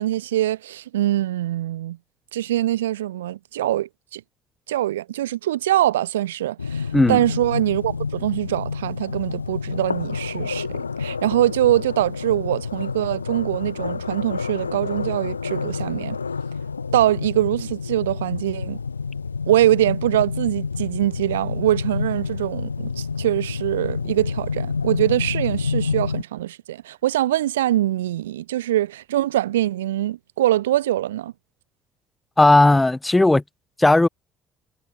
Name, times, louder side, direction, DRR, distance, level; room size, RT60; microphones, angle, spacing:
voice 1, 0.0-2.0 2.3-4.2 4.7-16.2 16.9-18.8 19.5-31.3, right 13 dB, 75° right, 1.2 m, -23 dB
sound 1, 6.6-26.2, left 5 dB, 85° left, 3.1 m, -29 dB
voice 2, 32.4-33.4 33.8-34.1, left 2 dB, 15° left, 1.9 m, -15 dB
figure-of-eight pair, 50°, 0 cm